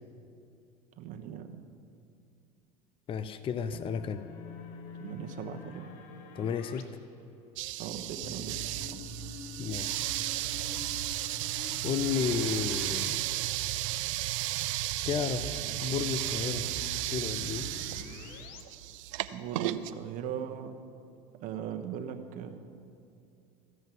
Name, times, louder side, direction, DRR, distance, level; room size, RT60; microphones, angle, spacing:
voice 1, 1.0-1.5 5.0-5.9 7.8-9.0 19.3-20.7 21.4-22.6, right 9 dB, 55° right, 6 dB, 1.1 m, -39 dB
voice 2, 3.1-4.2 6.3-6.9 9.6-10.1 11.8-13.2 15.0-16.7 17.1-17.7, left 7 dB, 35° left, 12 dB, 0.5 m, -32 dB
sound 1, 3.7-6.8 8.2-13.1 13.4-13.5 15.1-18.6, left 4 dB, 65° left, 1.0 m, -46 dB
sound 2, 7.6-19.9, right 16 dB, 75° right, 0.5 m, -34 dB
14.5 x 5.5 x 7.7 m, 2.6 s
supercardioid pair, 95°, 16 cm